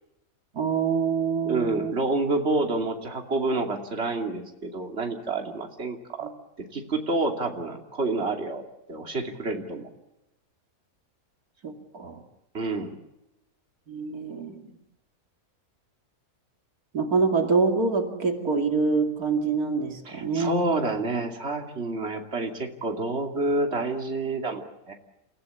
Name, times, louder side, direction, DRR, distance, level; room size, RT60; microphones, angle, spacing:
voice 1, 0.5-1.9 11.6-12.2 13.9-14.7 16.9-20.6, right 4 dB, 85° right, 4 dB, 3.0 m, -25 dB
voice 2, 1.4-6.3 6.7-8.6 8.9-9.9 12.5-13.0 20.0-24.9, right 2 dB, 45° right, 3 dB, 3.0 m, -28 dB
28.5 x 16.5 x 8.3 m, 0.94 s
omnidirectional pair, 1.5 m